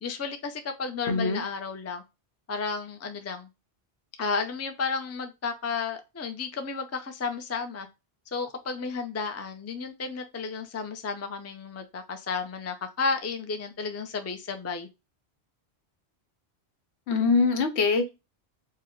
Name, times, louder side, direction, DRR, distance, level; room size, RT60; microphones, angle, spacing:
voice 1, 0.0-2.0 2.5-3.5 4.2-7.9 8.3-14.9, left 4 dB, 25° left, 6 dB, 0.3 m, -32 dB
voice 2, 1.1-1.4 17.1-18.1, left 4 dB, 85° left, 6 dB, 1.1 m, -23 dB
4.7 x 2.1 x 3.0 m, 0.25 s
omnidirectional pair, 1.1 m